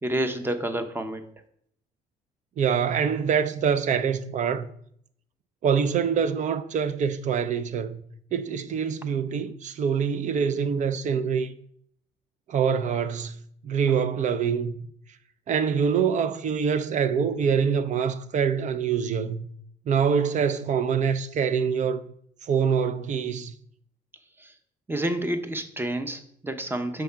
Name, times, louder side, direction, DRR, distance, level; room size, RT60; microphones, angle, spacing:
voice 1, 0.0-1.2 24.4-24.5 24.9-27.0, right 1 dB, 15° right, 0.8 m, -29 dB
voice 2, 2.6-4.7 5.6-8.0 8.3-11.5 12.5-13.4 13.6-14.7 15.5-19.5 19.9-22.0 22.4-23.5, right 7 dB, 45° right, 0.6 m, -25 dB
6.5 x 3.5 x 5.6 m
cardioid pair, 110°, 17 cm